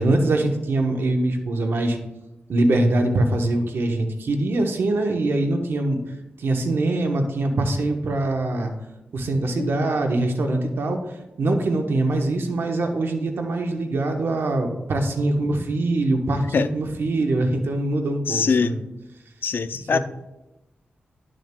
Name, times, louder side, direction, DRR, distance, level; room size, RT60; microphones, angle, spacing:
voice 1, 0.0-2.0 2.5-6.0 6.4-8.7 9.1-11.0 11.4-18.8 19.9-20.0, right 2 dB, 80° right, 4 dB, 1.0 m, -23 dB
voice 2, 9.6-9.9 16.5-16.7 18.3-18.8 19.4-20.0, left 5 dB, 65° left, 12 dB, 0.4 m, -23 dB
12.0 x 6.3 x 2.2 m, 0.98 s
cardioid pair, 75°, 4 cm